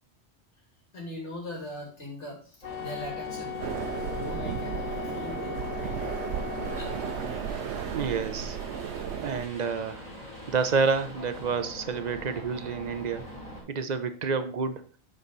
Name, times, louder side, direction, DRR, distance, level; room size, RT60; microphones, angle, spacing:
voice 1, 0.9-3.6 4.1-7.5, left 1 dB, 80° left, -1 dB, 2.8 m, -41 dB
Wind instrument woodwind instrument, 2.6-7.5, left 8 dB, 55° left, 0.6 m, -38 dB
sound 1, 2.6-13.6, equal, 35° left, 3.2 m, -43 dB
sound 2, 3.6-9.5, right 8 dB, 80° right, 0.9 m, -34 dB
voice 2, 7.9-8.6 9.2-10.1 10.5-13.2 13.7-14.8, right 5 dB, 45° right, 10 dB, 0.6 m, -29 dB
7.9 x 4.9 x 3.9 m, 0.41 s
omnidirectional pair, 1.2 m